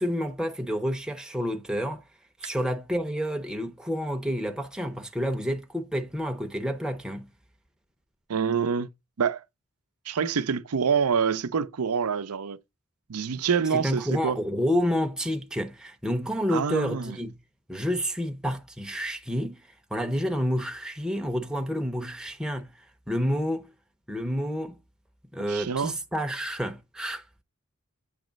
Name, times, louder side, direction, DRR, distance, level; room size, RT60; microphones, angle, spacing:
voice 1, 0.0-2.0 2.4-7.3 13.7-17.3 17.7-19.6 19.9-22.7 23.1-23.7 24.1-24.8 25.3-27.4, equal, 5° right, 0.6 m, -29 dB
voice 2, 8.3-8.9 9.2-9.4 10.1-12.6 13.1-14.4 16.5-17.2 25.5-25.9, right 6 dB, 90° right, 0.6 m, -26 dB
8.2 x 3.1 x 5.1 m
head